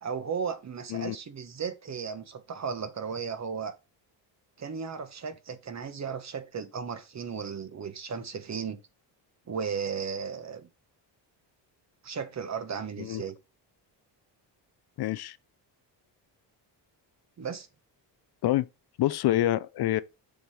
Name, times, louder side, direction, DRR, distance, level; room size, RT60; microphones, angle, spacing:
voice 1, 0.0-3.7 4.6-8.8 9.5-10.7 12.0-13.3 17.4-17.7, right 6 dB, 40° right, 1.1 m, -35 dB
voice 2, 15.0-15.4 18.4-18.7 19.0-20.0, left 14 dB, 60° left, 0.6 m, -26 dB
7.0 x 5.7 x 3.3 m
cardioid pair, 110°, 44 cm